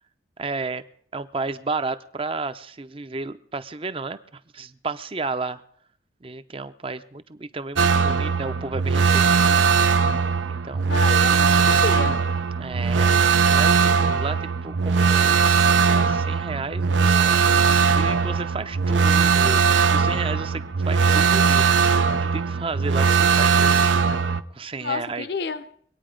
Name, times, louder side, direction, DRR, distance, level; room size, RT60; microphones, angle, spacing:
voice 1, 0.4-0.8 1.1-5.6 6.2-9.6 10.5-11.0 12.6-13.1 13.5-15.5 15.9-24.0 24.5-25.3, right 3 dB, 30° right, 0.6 m, -33 dB
sound 1, 7.8-24.4, right 6 dB, 85° right, 0.7 m, -19 dB
voice 2, 10.9-12.2 24.8-25.6, left 4 dB, 60° left, 0.7 m, -29 dB
23.0 x 9.2 x 5.1 m
head